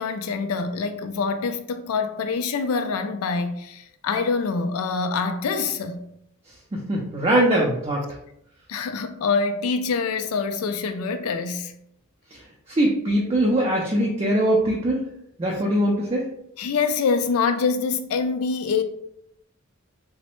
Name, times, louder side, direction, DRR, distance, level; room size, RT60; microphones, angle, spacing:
voice 1, 0.0-6.1 8.7-11.7 16.6-18.8, left 5 dB, 85° left, 0.4 m, -25 dB
voice 2, 6.7-8.1 12.3-12.4 12.7-15.0 15.4-16.3, right 1 dB, 25° right, 0.4 m, -22 dB
3.0 x 2.0 x 3.0 m
head